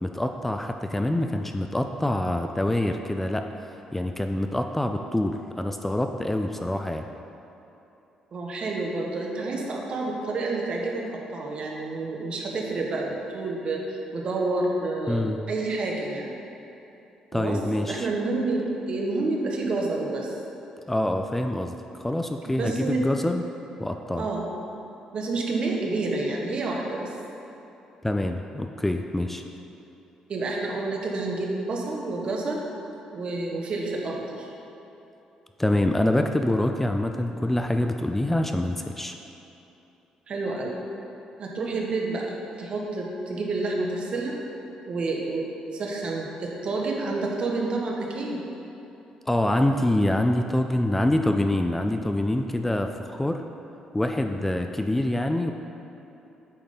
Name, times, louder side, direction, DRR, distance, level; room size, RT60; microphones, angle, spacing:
voice 1, 0.0-3.5 3.9-7.1 15.1-15.4 17.3-18.1 20.9-23.4 23.8-24.3 28.0-29.4 35.6-39.1 49.3-53.4 53.9-55.5, left 1 dB, 10° left, 5 dB, 0.3 m, -25 dB
voice 2, 8.3-16.3 17.3-20.3 22.4-23.0 24.2-24.5 25.1-27.1 30.3-32.6 33.1-34.5 40.3-40.7 41.4-44.4 44.9-48.4, right 3 dB, 55° right, -1 dB, 1.2 m, -29 dB
8.7 x 3.8 x 5.4 m, 3.0 s
cardioid pair, 80°, 2 cm